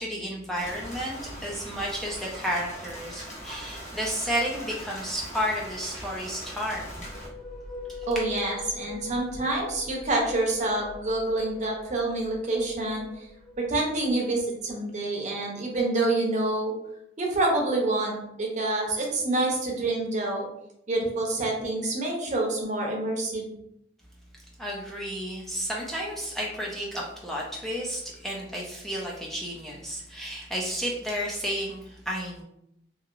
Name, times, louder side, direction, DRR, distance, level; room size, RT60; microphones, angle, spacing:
voice 1, 0.0-7.0 24.6-32.4, equal, ahead, -4 dB, 0.4 m, -32 dB
Rain, 0.6-7.3, equal, 40° left, 1.0 m, -41 dB
sound 1, 6.9-14.4, left 3 dB, 60° left, 1.1 m, -42 dB
voice 2, 8.1-13.1 13.7-16.7 17.2-20.5 20.9-23.5, right 2 dB, 45° right, -1 dB, 0.7 m, -27 dB
2.9 x 2.7 x 2.5 m, 0.77 s
head